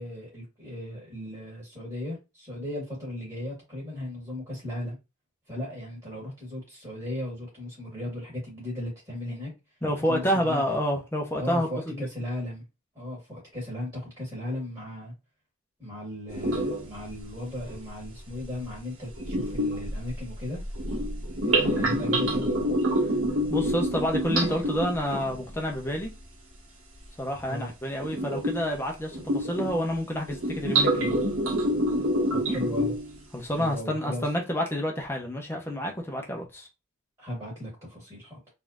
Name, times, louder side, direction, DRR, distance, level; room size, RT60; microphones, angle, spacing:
voice 1, 0.0-5.0 5.5-9.5 10.1-10.7 11.4-12.6 12.9-15.1 15.8-20.6 21.4-22.5 27.5-27.7 32.3-32.9 33.5-34.3 37.2-38.4, left 1 dB, 20° right, 2.5 m, -36 dB
voice 2, 9.8-12.1 23.5-26.1 27.2-31.2 33.3-36.7, equal, 10° left, 1.1 m, -29 dB
sound 1, 16.3-17.0 17.6-17.7 19.2-25.5 28.0-28.7 29.1-29.9 30.3-33.2, right 1 dB, 65° right, 1.9 m, -27 dB
4.2 x 3.6 x 2.6 m
head